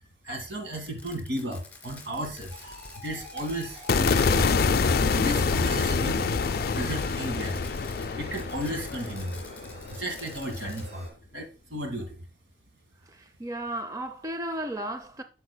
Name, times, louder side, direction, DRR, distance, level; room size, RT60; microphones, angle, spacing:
voice 1, 0.2-2.7 3.0-4.5 5.1-6.3 6.7-7.6 8.2-9.4 9.9-12.2, equal, 80° right, 1.9 m, -34 dB
Fireworks, 0.7-6.1 6.3-10.8, left 3 dB, 10° left, 2.6 m, -47 dB
sound 1, 2.5-11.1, equal, 35° right, 3.7 m, -46 dB
sound 2, 3.9-10.1, left 4 dB, 55° left, 0.4 m, -26 dB
voice 2, 13.1-15.2, right 1 dB, 20° right, 0.4 m, -34 dB
11.0 x 6.5 x 2.2 m
head